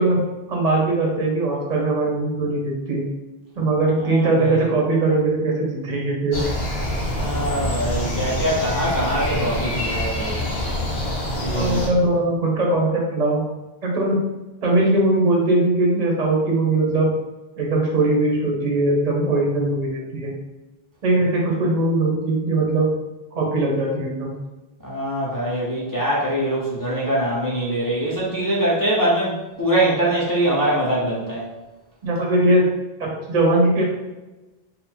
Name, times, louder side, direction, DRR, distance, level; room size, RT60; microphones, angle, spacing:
voice 1, 0.0-3.0 3.6-6.4 11.5-13.4 13.8-14.2 14.6-17.1 17.6-20.3 21.0-22.9 23.3-24.3 32.0-32.7 33.0-33.9, right 2 dB, 45° right, -2 dB, 0.9 m, -20 dB
voice 2, 4.0-4.6 7.1-10.4 11.4-11.8 24.8-31.5, right 1 dB, 20° left, -7 dB, 0.7 m, -23 dB
sound 1, 6.3-11.9, left 1 dB, 80° left, 1.2 m, -26 dB
4.1 x 2.0 x 4.3 m, 1.1 s
omnidirectional pair, 1.0 m